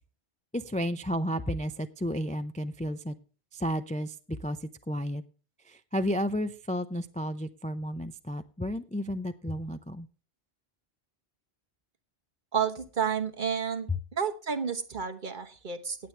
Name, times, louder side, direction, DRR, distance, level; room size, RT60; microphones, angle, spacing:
voice 1, 0.5-3.1 3.5-5.2 5.7-10.1, equal, 10° left, 10 dB, 0.3 m, -32 dB
voice 2, 12.5-16.0, right 7 dB, 50° right, 7 dB, 1.3 m, -31 dB
18.0 x 7.9 x 3.3 m, 0.37 s
omnidirectional pair, 1.1 m